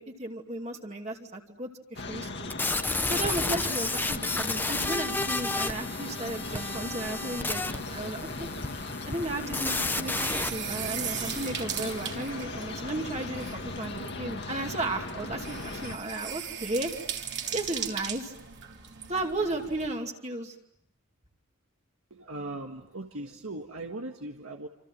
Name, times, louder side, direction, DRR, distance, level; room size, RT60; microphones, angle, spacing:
voice 1, 0.0-2.5 3.1-8.5 9.1-16.9 17.5-18.3 19.1-20.5, right 1 dB, 30° right, 2 dB, 2.6 m, -34 dB
sound 1, 2.0-16.0, left 3 dB, 50° left, 2.2 m, -38 dB
sound 2, 2.5-10.5, left 3 dB, 10° left, 1.0 m, -31 dB
sound 3, 6.4-19.9, right 8 dB, 50° right, 3.2 m, -40 dB
voice 2, 22.1-24.7, right 2 dB, 75° right, 2 dB, 1.8 m, -39 dB
28.0 x 27.5 x 7.6 m, 0.78 s
head